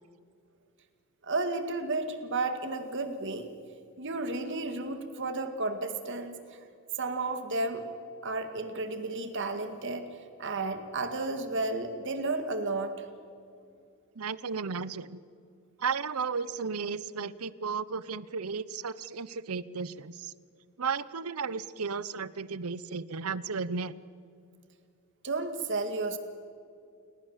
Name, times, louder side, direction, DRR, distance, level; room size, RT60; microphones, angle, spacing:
voice 1, 1.2-3.5 4.0-6.6 7.0-7.8 8.2-10.1 10.4-13.1 25.2-26.2, right 3 dB, 60° right, 8 dB, 2.1 m, -32 dB
voice 2, 14.2-15.2 15.8-20.3 20.8-23.9, right 5 dB, 90° right, 18 dB, 0.8 m, -34 dB
29.5 x 18.0 x 7.4 m, 2.5 s
head